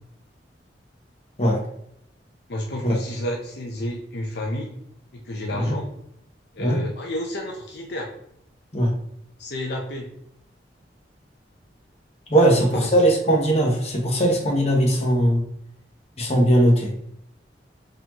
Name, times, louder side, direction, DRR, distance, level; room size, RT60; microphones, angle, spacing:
voice 1, 2.5-4.7 5.1-5.9 6.5-8.1 9.4-10.1 12.4-12.9, left 1 dB, 65° left, 0 dB, 0.5 m, -30 dB
voice 2, 12.3-15.4 16.2-16.9, right 1 dB, 35° left, 0 dB, 0.9 m, -19 dB
4.0 x 2.9 x 2.9 m, 0.71 s
head